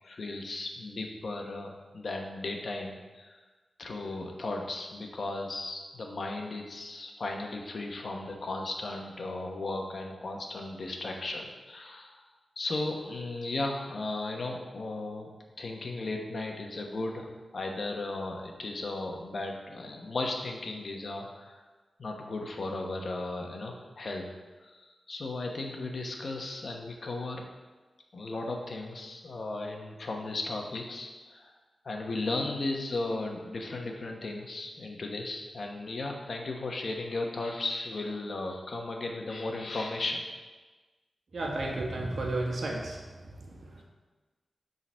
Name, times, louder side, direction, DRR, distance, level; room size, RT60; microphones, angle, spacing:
voice 1, 0.0-3.4 3.8-12.2 12.6-15.3 15.6-21.6 22.0-24.3 24.6-27.5 28.1-31.5 31.8-40.2, left 2 dB, 60° left, 2 dB, 1.1 m, -36 dB
voice 2, 41.3-43.8, right 2 dB, 70° right, -1 dB, 1.5 m, -33 dB
7.1 x 3.9 x 6.2 m, 1.3 s
wide cardioid pair, 95°, 0 cm